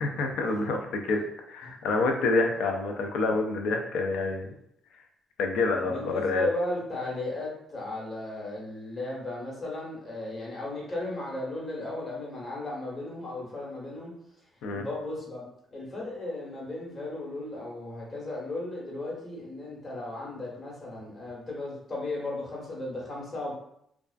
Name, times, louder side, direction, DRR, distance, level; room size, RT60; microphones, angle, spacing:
voice 1, 0.0-1.2 1.5-4.5 5.4-6.5 14.6-14.8, left 3 dB, 85° left, 4 dB, 0.4 m, -27 dB
voice 2, 5.9-14.1 14.7-23.5, left 2 dB, 35° left, -4 dB, 1.1 m, -35 dB
2.3 x 2.3 x 2.3 m, 0.73 s
cardioid pair, 90°, 0 cm